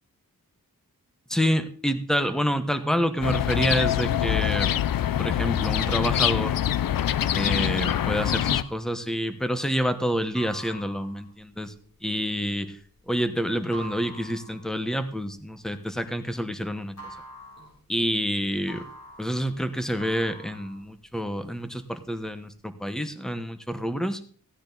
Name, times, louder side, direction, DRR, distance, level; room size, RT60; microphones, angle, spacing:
voice 1, 1.3-4.7 5.2-6.6 7.3-11.7 12.0-12.8 13.1-16.9 17.9-18.9 19.2-24.2, equal, ahead, 10 dB, 1.1 m, -28 dB
sound 1, 3.2-8.6, left 11 dB, 70° left, 0.5 m, -24 dB
sound 2, 8.2-16.5 16.8-21.5 21.9-22.5, right 1 dB, 50° left, 6.4 m, -45 dB
15.5 x 9.7 x 4.0 m, 0.44 s
wide cardioid pair, 105°, 35 cm